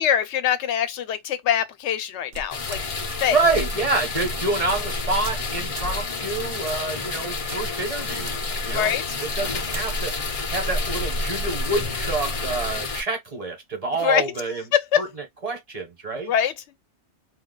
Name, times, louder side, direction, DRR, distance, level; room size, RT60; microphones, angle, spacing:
voice 1, 0.0-2.8 3.2-3.4 8.7-9.0 14.0-14.2 14.7-15.0 16.3-16.5, left 9 dB, 75° left, 0.9 m, -23 dB
sound 1, 2.3-3.2 3.5-3.7 4.2-4.3 4.7-4.9 5.2-5.5 5.8-6.0 6.7-6.9 7.5-7.9 8.2-8.3 9.2-9.9, right 4 dB, 65° right, 0.7 m, -39 dB
sound 2, 2.5-13.0, left 3 dB, 40° left, 0.5 m, -29 dB
voice 2, 3.3-8.4 8.6-10.1 10.5-14.6 15.0-15.1 15.4-16.3, right 3 dB, 35° right, 1.0 m, -27 dB
2.3 x 2.3 x 3.7 m
omnidirectional pair, 1.2 m